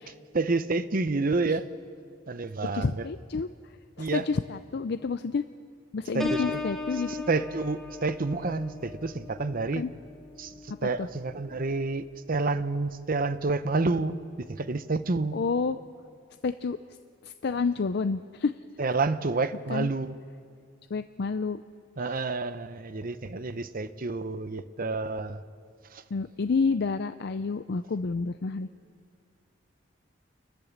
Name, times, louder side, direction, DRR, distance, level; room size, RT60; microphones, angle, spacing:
voice 1, 0.3-1.7 2.3-3.0 4.0-4.2 6.1-6.6 7.1-9.8 10.4-10.5 10.8-14.2 14.5-15.4 18.8-20.2 22.0-25.4 25.9-26.0, right 3 dB, 50° right, 0.8 m, -29 dB
voice 2, 2.7-5.4 5.9-7.2 9.7-9.9 10.8-11.1 15.3-15.8 16.4-16.8 17.2-18.5 19.7-19.9 20.9-21.6 22.0-22.2 26.1-28.7, left 4 dB, 60° left, 0.5 m, -29 dB
Piano, 6.2-11.8 12.3-12.6, left 3 dB, ahead, 1.7 m, -37 dB
29.5 x 12.0 x 7.3 m
head